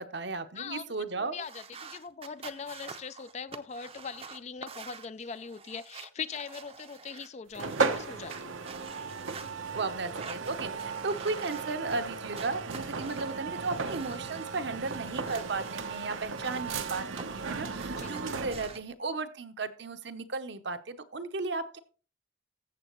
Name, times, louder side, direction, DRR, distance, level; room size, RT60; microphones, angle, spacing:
voice 1, 0.0-1.3 9.7-21.8, right 3 dB, 60° right, 0.8 m, -35 dB
voice 2, 0.5-8.6 17.9-18.2, left 6 dB, 35° left, 0.3 m, -41 dB
sound 1, 1.4-7.3 7.6-9.5 10.0-12.0 12.3-14.5 14.8-17.2 17.5-18.8, right 5 dB, 30° right, 0.6 m, -48 dB
sound 2, 7.5-18.8, right 4 dB, 90° right, 1.0 m, -35 dB
14.5 x 7.4 x 3.1 m
head